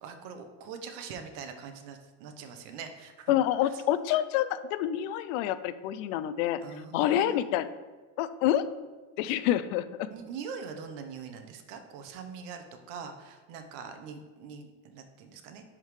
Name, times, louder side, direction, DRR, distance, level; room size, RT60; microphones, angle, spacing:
voice 1, 0.0-3.3 3.6-3.8 6.6-7.6 10.1-15.6, right 6 dB, 75° right, 7 dB, 0.9 m, -43 dB
voice 2, 3.3-6.6 6.9-7.7 8.2-8.6 9.2-10.1, left 12 dB, 80° left, 14 dB, 0.5 m, -27 dB
11.0 x 3.6 x 3.2 m, 1.3 s
cardioid pair, 160°, 37 cm